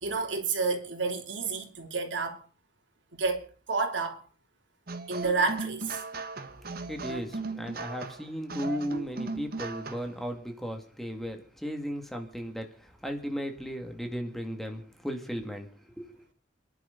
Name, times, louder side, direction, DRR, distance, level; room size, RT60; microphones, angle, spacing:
voice 1, 0.0-2.4 3.1-4.2 5.1-6.0, right 4 dB, 80° right, 3.0 m, -30 dB
sound 1, 4.9-10.2, right 3 dB, 55° right, 1.4 m, -37 dB
voice 2, 6.9-15.7 16.0-16.1, equal, ahead, 2.1 m, -36 dB
29.0 x 11.0 x 3.9 m
head